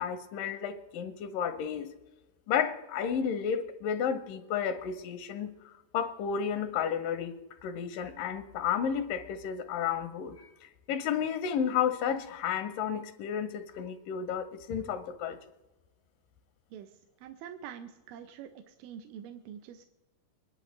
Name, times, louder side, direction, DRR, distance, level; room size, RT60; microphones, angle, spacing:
voice 1, 0.0-1.9 2.5-7.3 7.6-10.5 10.9-15.4, left 8 dB, 85° left, 2.3 m, -32 dB
voice 2, 17.2-19.9, right 9 dB, 85° right, 2.3 m, -45 dB
25.0 x 11.0 x 3.1 m
omnidirectional pair, 3.9 m